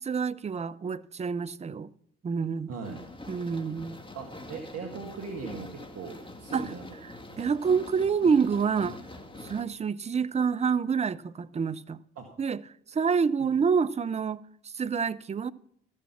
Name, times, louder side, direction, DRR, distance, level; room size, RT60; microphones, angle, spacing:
voice 1, 0.0-1.9 2.2-2.7 3.3-4.0 6.5-9.0 9.4-12.0 12.4-15.5, right 6 dB, 25° right, 0.5 m, -28 dB
voice 2, 2.7-3.0 4.1-6.8 12.2-12.3, right 4 dB, 55° right, 1.8 m, -39 dB
sound 1, 2.8-9.6, left 2 dB, 15° left, 2.0 m, -44 dB
14.5 x 6.4 x 5.8 m
hypercardioid pair, 45°, 29 cm